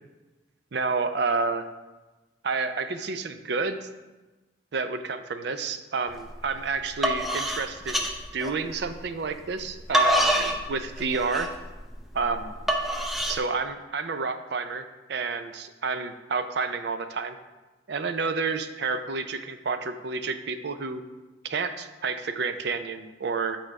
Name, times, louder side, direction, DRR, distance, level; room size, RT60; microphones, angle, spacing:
voice 1, 0.7-1.7 2.4-3.9 4.7-8.1 8.3-11.5 12.1-12.5 13.3-17.4 17.9-21.0 21.4-23.6, right 4 dB, 60° right, 10 dB, 0.5 m, -30 dB
sound 1, 6.2-6.5 6.8-8.9 9.5-13.4, equal, ahead, 0.5 m, -26 dB
8.8 x 3.8 x 4.7 m, 1.2 s
head